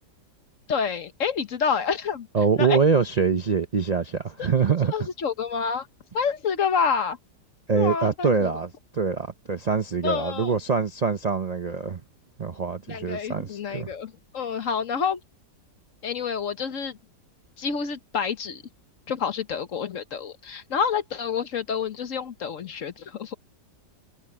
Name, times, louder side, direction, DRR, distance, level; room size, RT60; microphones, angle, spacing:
voice 1, 0.7-2.3 2.6-2.8 4.4-4.5 4.9-5.9 6.1-7.2 7.7-8.5 10.0-10.5 12.9-15.2 16.0-17.0 17.6-18.6 19.1-23.4, left 6 dB, 50° left, 1.3 m, -28 dB
voice 2, 2.3-4.9 7.7-12.0 12.4-13.9, right 5 dB, 85° right, 0.3 m, -24 dB
omnidirectional pair, 1.8 m